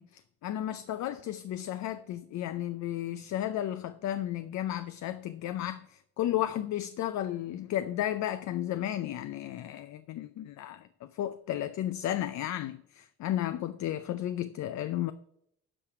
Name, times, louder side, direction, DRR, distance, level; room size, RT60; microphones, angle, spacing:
voice 1, 0.0-15.1, left 12 dB, 65° left, 0.5 m, -33 dB
8.7 x 5.0 x 4.8 m
cardioid pair, 90°, 30 cm